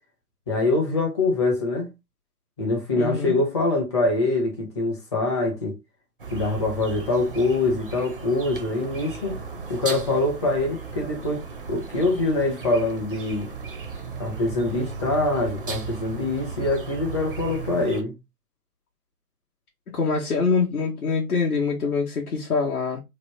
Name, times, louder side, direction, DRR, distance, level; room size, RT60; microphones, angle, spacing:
voice 1, 0.5-1.9 2.6-5.7 6.3-9.3 9.7-11.4 11.7-13.5 14.2-18.1, left 2 dB, 20° left, 0.6 m, -24 dB
voice 2, 3.0-3.4 19.9-23.0, left 4 dB, 65° left, 0.9 m, -24 dB
sound 1, 6.2-18.0, right 5 dB, 35° right, 0.5 m, -36 dB
3.0 x 2.1 x 3.0 m
figure-of-eight pair, 135°, 48 cm